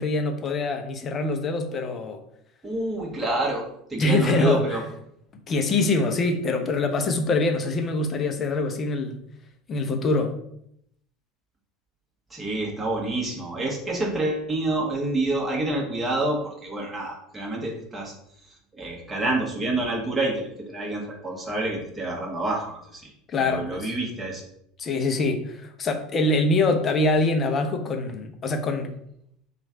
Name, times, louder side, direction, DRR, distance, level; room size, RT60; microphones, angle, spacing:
voice 1, 0.0-2.2 4.0-4.8 5.5-9.2 9.7-10.3 23.3-23.9 24.8-28.9, left 2 dB, 35° left, 5 dB, 0.6 m, -24 dB
voice 2, 2.6-3.6 3.9-4.8 12.3-18.1 18.7-23.1 23.4-24.4, right 2 dB, 15° right, -2 dB, 1.3 m, -28 dB
3.1 x 2.4 x 4.3 m, 0.73 s
hypercardioid pair, 75°, 0 cm